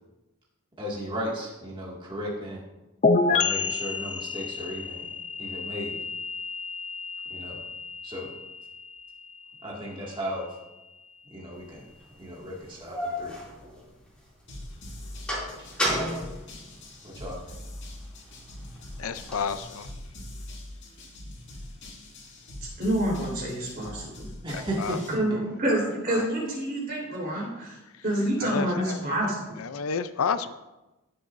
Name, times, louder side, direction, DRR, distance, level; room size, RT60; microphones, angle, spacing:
voice 1, 0.8-2.6 3.3-5.1 5.4-6.0 7.3-7.6 8.0-8.3 9.6-10.5 11.3-11.8 12.2-13.4 17.0-17.6 24.4-25.4, equal, 20° right, -4 dB, 2.1 m, -35 dB
sound 1, 3.0-10.6, left 4 dB, 35° left, 0.5 m, -30 dB
sound 2, 11.8-11.9 12.5-14.4 14.7-17.4 17.8-19.6, equal, 5° left, 2.6 m, -33 dB
sound 3, 14.5-25.1, left 1 dB, 55° left, 2.3 m, -43 dB
voice 2, 19.0-19.9 24.5-25.0 26.1-26.3 28.4-29.1 29.6-30.5, left 6 dB, 75° left, 12 dB, 0.5 m, -31 dB
voice 3, 22.8-24.3 25.1-27.8 28.0-29.6, right 1 dB, 45° right, -3 dB, 3.8 m, -27 dB
16.5 x 6.9 x 2.6 m, 1.0 s
head